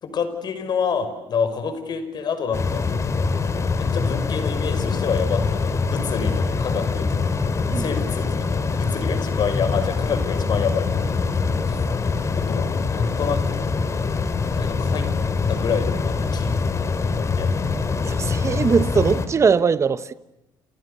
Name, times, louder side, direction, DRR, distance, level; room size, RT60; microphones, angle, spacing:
voice 1, 0.0-2.8 3.8-7.3 7.7-11.8 12.3-12.7 12.9-13.6 14.5-15.1 15.5-16.5 16.8-17.5, left 6 dB, 55° left, 5.6 m, -28 dB
sound 1, 2.5-19.3, left 4 dB, 35° left, 2.7 m, -24 dB
voice 2, 18.1-20.1, right 5 dB, 35° right, 1.2 m, -20 dB
30.0 x 28.5 x 6.9 m
cardioid pair, 105°, 9 cm